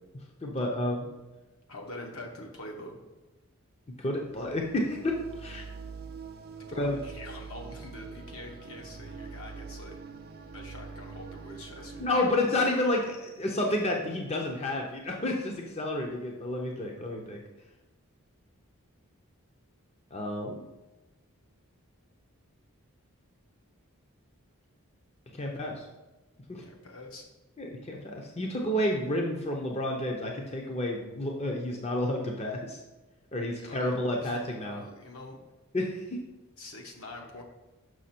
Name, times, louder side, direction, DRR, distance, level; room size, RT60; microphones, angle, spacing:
voice 1, 0.4-1.1 4.0-5.7 6.8-7.0 12.0-17.4 20.1-20.6 25.3-25.9 26.5-26.6 27.6-32.8 33.3-34.8 35.7-36.2, left 1 dB, 30° left, 0 dB, 0.6 m, -30 dB
voice 2, 1.7-3.0 6.6-10.0 10.5-12.2 26.6-27.3 33.6-35.4 36.6-37.4, left 2 dB, 70° left, 0 dB, 1.2 m, -45 dB
sound 1, 4.0-12.1, right 5 dB, 45° right, 0.5 m, -44 dB
6.2 x 5.9 x 4.3 m, 1.1 s
head